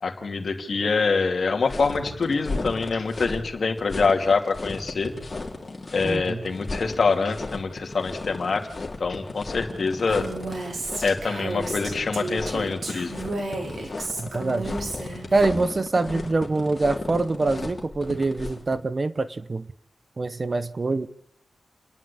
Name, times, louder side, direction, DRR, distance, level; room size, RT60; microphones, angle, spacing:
voice 1, 0.0-5.1 5.9-10.3 11.0-13.2, left 4 dB, 55° left, 2.7 m, -25 dB
sound 1, 1.7-18.7, left 3 dB, 35° left, 3.5 m, -35 dB
voice 2, 6.0-6.4 14.2-14.7 15.3-19.7 20.2-21.1, right 3 dB, 35° right, 0.8 m, -25 dB
Female speech woman speaking, 10.1-15.4, right 2 dB, 70° right, 4.7 m, -32 dB
30.0 x 11.0 x 8.6 m
wide cardioid pair, 130°, 0 cm